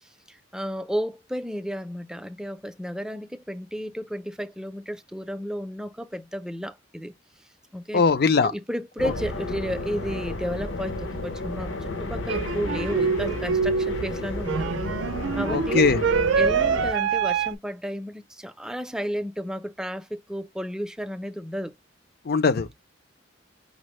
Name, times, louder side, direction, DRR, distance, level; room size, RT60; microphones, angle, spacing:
voice 1, 0.0-7.1 7.7-8.0 8.4-14.7 15.4-15.9 16.3-21.7, equal, 5° right, 0.4 m, -32 dB
voice 2, 7.9-8.5 9.0-9.1 15.5-16.0 22.3-22.8, left 5 dB, 55° left, 0.5 m, -21 dB
sound 1, 9.0-16.9, left 2 dB, 75° left, 0.9 m, -32 dB
sound 2, 12.3-17.5, right 5 dB, 80° right, 0.4 m, -25 dB
5.1 x 2.0 x 3.1 m
head